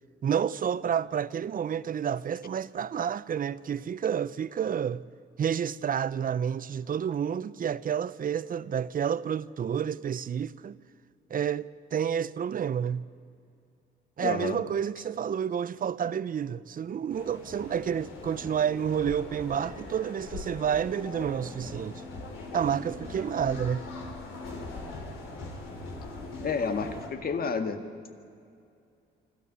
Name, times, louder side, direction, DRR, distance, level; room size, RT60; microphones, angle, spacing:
voice 1, 0.2-5.0 5.4-10.8 11.3-13.0 14.2-22.0 22.5-23.8, right 8 dB, 45° right, 0.7 m, -29 dB
voice 2, 14.2-14.6 26.4-27.8, left 5 dB, 50° left, 1.9 m, -30 dB
sound 1, 17.1-27.1, left 3 dB, 85° left, 4.2 m, -41 dB
25.0 x 13.5 x 9.6 m
cardioid pair, 90°, 20 cm